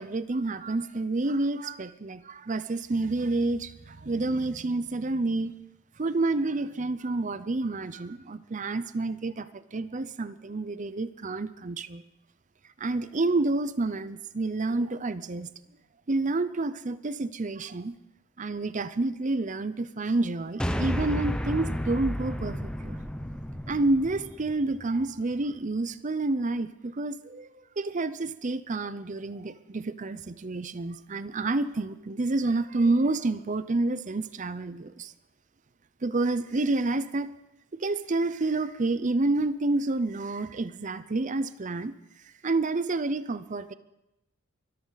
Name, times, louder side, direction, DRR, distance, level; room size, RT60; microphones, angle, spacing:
voice 1, 0.0-5.5 6.0-12.0 12.8-15.5 16.1-17.9 18.4-23.0 23.7-35.1 36.0-37.3 37.7-41.9 42.4-43.7, right 2 dB, 35° right, 14 dB, 0.6 m, -29 dB
sound 1, 20.6-25.0, equal, 5° left, 0.8 m, -32 dB
23.5 x 13.5 x 4.0 m, 0.92 s
head